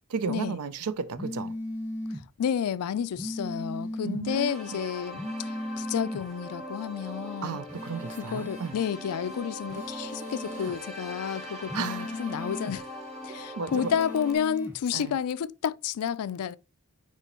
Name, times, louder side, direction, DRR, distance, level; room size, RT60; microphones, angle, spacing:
voice 1, 0.1-1.5 4.0-4.8 7.4-8.8 10.6-10.7 11.7-12.1 13.6-13.9 14.9-15.2, right 5 dB, 80° right, 0.5 m, -34 dB
sound 1, 1.2-2.2 3.2-4.2 5.2-6.2 7.7-8.7 9.7-10.7 11.7-12.7 13.7-14.7, left 1 dB, 10° right, 1.1 m, -37 dB
voice 2, 2.4-7.6 8.2-12.8 13.2-16.6, left 8 dB, 85° left, 0.4 m, -31 dB
sound 2, 4.3-14.3, equal, 30° right, 2.1 m, -41 dB
6.7 x 5.1 x 2.9 m
head